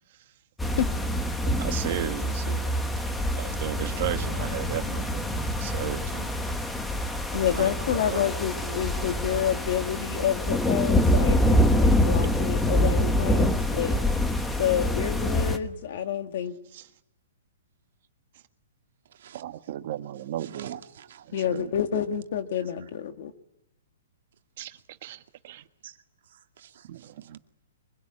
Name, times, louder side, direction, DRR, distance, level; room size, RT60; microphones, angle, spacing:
sound 1, 0.6-15.6, left 1 dB, 5° left, 1.2 m, -25 dB
voice 1, 1.6-2.7 3.3-6.3 7.3-8.2 16.7-16.8 19.3-20.8 21.3-21.7 24.6-25.6 26.9-27.4, right 12 dB, 45° right, 8 dB, 1.6 m, -35 dB
voice 2, 7.3-14.0 14.6-16.6 21.3-23.3, left 9 dB, 50° left, 7 dB, 2.0 m, -28 dB
voice 3, 8.6-9.3 19.1-19.4 20.4-21.2 25.8-26.0 26.3-27.3, right 9 dB, 60° right, 5 dB, 2.2 m, -47 dB
24.0 x 22.5 x 9.8 m, 0.93 s
hypercardioid pair, 170°, 0 cm